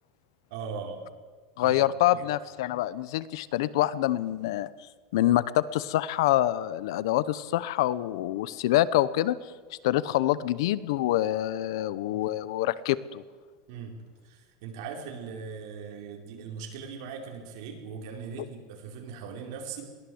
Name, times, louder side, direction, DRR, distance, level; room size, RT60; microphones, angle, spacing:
voice 1, 0.5-1.0 1.6-2.3 12.1-12.3 13.7-13.9 14.2-19.8, right 6 dB, 65° right, 2 dB, 4.6 m, -40 dB
voice 2, 1.6-4.7 5.1-9.4 9.8-13.2, left 14 dB, 75° left, 18 dB, 0.9 m, -26 dB
21.5 x 16.0 x 8.0 m, 1.5 s
supercardioid pair, 160°, 2 cm